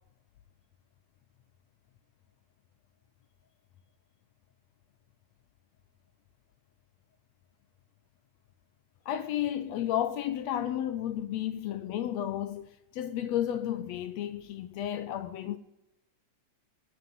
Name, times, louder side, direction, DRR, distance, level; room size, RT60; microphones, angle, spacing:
voice 1, 9.1-15.6, left 11 dB, 75° left, 1.7 m, -32 dB
21.5 x 8.7 x 5.5 m
omnidirectional pair, 3.4 m